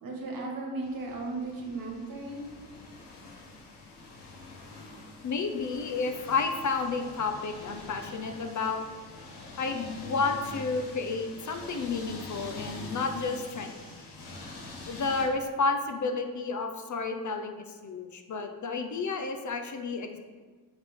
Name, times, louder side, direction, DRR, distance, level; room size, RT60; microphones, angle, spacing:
voice 1, 0.0-2.4, right 2 dB, 55° right, -1 dB, 1.7 m, -36 dB
sound 1, 0.8-15.3, left 2 dB, 80° left, 1.3 m, -45 dB
voice 2, 5.2-8.8 9.6-13.7 14.9-17.5 17.8-20.2, left 4 dB, 45° left, 6 dB, 0.7 m, -31 dB
8.0 x 3.6 x 3.7 m, 1.4 s
supercardioid pair, 60°, 40 cm